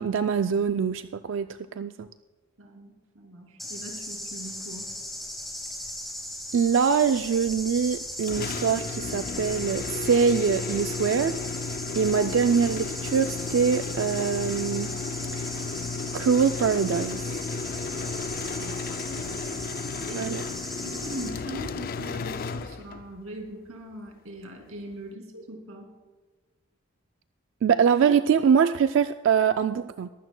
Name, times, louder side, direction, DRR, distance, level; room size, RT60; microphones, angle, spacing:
voice 1, 0.0-2.1 6.5-11.4 12.0-14.9 15.3-15.5 16.1-17.2 20.2-20.4 27.6-30.1, right 6 dB, 60° right, 11 dB, 0.3 m, -24 dB
voice 2, 2.6-4.9 18.4-19.4 20.0-20.3 20.8-25.9, right 1 dB, 85° right, 3 dB, 2.4 m, -41 dB
sound 1, 3.6-21.3, left 1 dB, ahead, 1.9 m, -37 dB
sound 2, 8.2-23.2, left 4 dB, 40° left, 0.3 m, -34 dB
22.0 x 12.5 x 2.2 m, 1.3 s
head